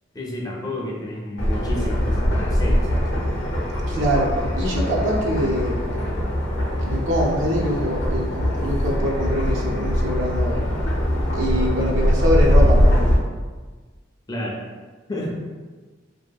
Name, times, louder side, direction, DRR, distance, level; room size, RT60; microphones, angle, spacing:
voice 1, 0.1-3.3 14.3-14.6 15.1-15.4, left 1 dB, 20° left, -2 dB, 0.4 m, -30 dB
sound 1, 1.4-13.2, equal, 75° left, 0.6 m, -21 dB
voice 2, 3.9-5.8 6.8-10.6 11.3-13.1, equal, 70° right, -3 dB, 0.5 m, -24 dB
2.6 x 2.4 x 2.3 m, 1.4 s
head